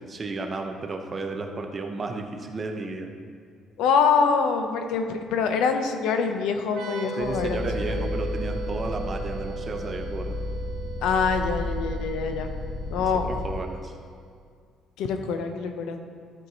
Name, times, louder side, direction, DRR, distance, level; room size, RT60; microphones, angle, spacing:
voice 1, 0.0-3.1 7.2-10.4 13.0-13.9, right 3 dB, 25° right, 4 dB, 0.7 m, -33 dB
voice 2, 3.8-8.0 11.0-12.5 12.9-13.3 15.0-16.0, left 5 dB, 85° left, 6 dB, 0.7 m, -25 dB
sound 1, 6.7-14.2, right 6 dB, 75° right, 1.0 m, -38 dB
sound 2, 7.2-13.6, left 2 dB, 55° left, 0.7 m, -33 dB
13.0 x 4.6 x 4.0 m, 2.1 s
cardioid pair, 150°, 0 cm